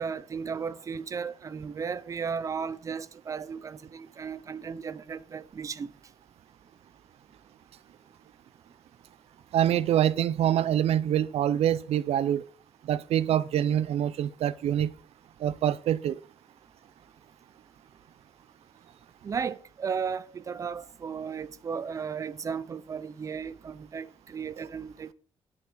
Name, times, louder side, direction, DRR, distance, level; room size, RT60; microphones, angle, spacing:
voice 1, 0.0-5.9 19.2-25.1, right 6 dB, 30° right, 0.7 m, -35 dB
voice 2, 9.5-12.4 12.8-14.9 15.4-16.2 24.6-24.7, right 10 dB, 75° right, 0.8 m, -25 dB
11.5 x 8.6 x 6.4 m
wide cardioid pair, 170°, 10 cm